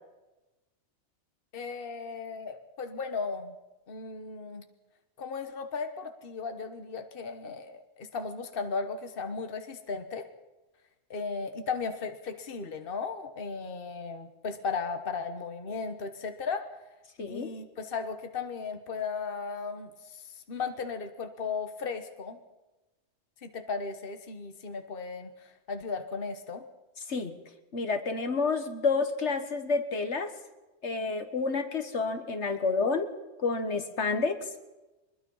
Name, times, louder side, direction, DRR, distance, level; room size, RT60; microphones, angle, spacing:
voice 1, 1.5-3.5 3.9-4.6 5.2-10.3 11.1-16.7 17.3-22.4 23.4-26.6, left 5 dB, 55° left, 7 dB, 1.4 m, -36 dB
voice 2, 17.2-17.5 27.1-27.3 27.7-30.3 30.8-33.1 33.4-34.4, left 4 dB, 75° left, 8 dB, 1.8 m, -29 dB
23.0 x 21.5 x 5.6 m, 1.1 s
omnidirectional pair, 1.2 m